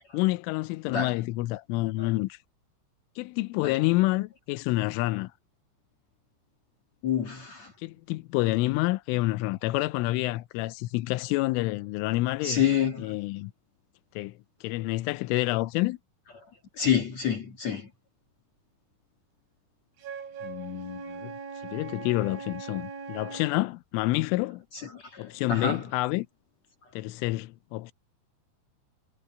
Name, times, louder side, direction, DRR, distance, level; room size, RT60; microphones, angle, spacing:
voice 1, 0.1-2.4 3.2-5.3 7.8-12.6 13.0-13.5 14.2-14.3 14.6-16.0 20.4-21.3 21.7-24.6 25.2-26.3 27.0-27.9, left 20 dB, 85° left, 3.3 m, -28 dB
voice 2, 7.0-7.7 12.4-13.1 16.8-17.9 24.9-25.8, left 8 dB, 50° left, 2.2 m, -28 dB
Wind instrument woodwind instrument, 20.0-23.6, right 5 dB, 85° right, 6.8 m, -40 dB
omnidirectional pair, 5.6 m